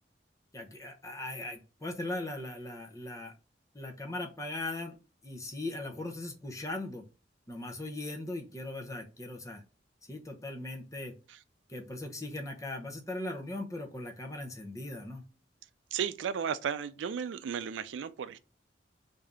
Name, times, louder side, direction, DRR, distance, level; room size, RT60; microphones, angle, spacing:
voice 1, 0.5-3.3 3.7-5.0 5.2-7.0 7.5-9.6 10.1-11.1 11.7-15.2, left 2 dB, 20° left, 0.7 m, -39 dB
voice 2, 15.9-18.4, right 7 dB, 85° right, 0.4 m, -34 dB
3.4 x 2.7 x 3.5 m
head